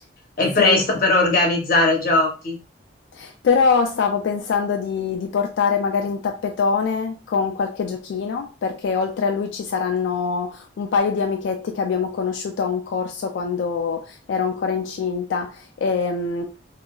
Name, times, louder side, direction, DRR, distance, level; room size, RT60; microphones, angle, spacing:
voice 1, 0.4-2.6, left 2 dB, 50° left, 0.7 m, -19 dB
voice 2, 3.1-16.6, left 5 dB, 80° left, 0.3 m, -24 dB
2.8 x 2.4 x 2.2 m
head